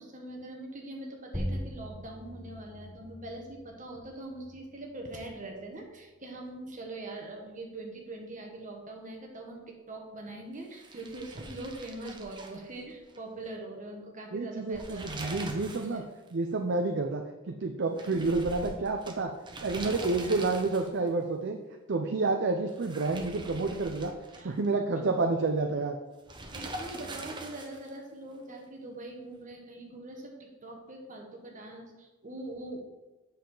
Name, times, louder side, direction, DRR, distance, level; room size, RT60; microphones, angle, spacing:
voice 1, 0.0-16.0 18.1-18.3 20.2-20.3 24.3-24.6 24.9-25.2 26.5-30.3 30.6-32.8, right 2 dB, 40° right, 1 dB, 1.5 m, -43 dB
sound 1, 1.3-6.4, equal, 5° left, 1.1 m, -41 dB
sound 2, 10.7-13.2 13.5-13.6 14.6-16.0 16.3-16.4 18.0-21.1 22.7-24.7 26.3-28.0, right 2 dB, 25° right, 1.0 m, -43 dB
voice 2, 14.3-16.0 16.3-19.3 19.6-21.6 21.9-24.1 24.4-26.0, right 3 dB, 55° right, 4 dB, 0.6 m, -29 dB
8.0 x 6.6 x 3.9 m, 1.1 s
head